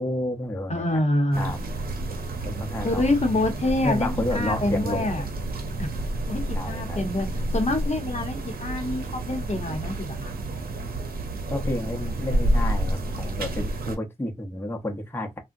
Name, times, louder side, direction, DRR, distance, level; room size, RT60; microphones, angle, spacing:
voice 1, 0.0-1.0 1.4-1.6 2.4-3.2 3.8-5.1 6.5-7.0 11.5-15.4, left 1 dB, 15° left, 0.8 m, -30 dB
voice 2, 0.7-1.5 2.8-5.2 5.8-5.9 6.3-10.3, left 2 dB, 50° left, 0.8 m, -26 dB
sound 1, 1.3-14.0, right 1 dB, 85° right, 0.6 m, -29 dB
3.5 x 2.1 x 2.5 m
cardioid pair, 55°, 15 cm